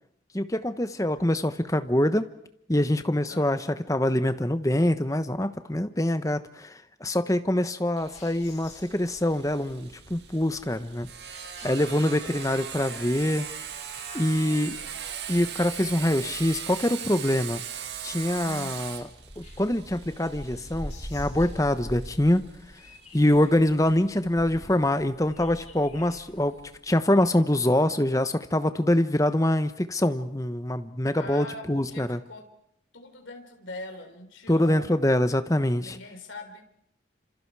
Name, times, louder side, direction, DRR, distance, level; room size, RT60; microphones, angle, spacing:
voice 1, 0.3-2.2 2.7-11.1 11.6-13.4 14.1-14.8 15.3-17.6 18.0-19.0 19.4-22.4 23.1-26.6 26.8-32.2 34.5-36.0, left 1 dB, 15° left, 10 dB, 1.1 m, -24 dB
voice 2, 3.3-3.7 12.2-12.3 12.8-13.5 14.3-15.0 18.4-18.8 31.1-32.5 32.9-34.9 35.8-36.6, left 2 dB, 90° left, 4 dB, 4.0 m, -43 dB
sound 1, 8.0-26.8, equal, 35° left, 6.3 m, -46 dB
Sawing, 8.0-23.4, right 8 dB, 60° right, 2.2 m, -39 dB
29.0 x 27.0 x 4.9 m, 0.72 s
head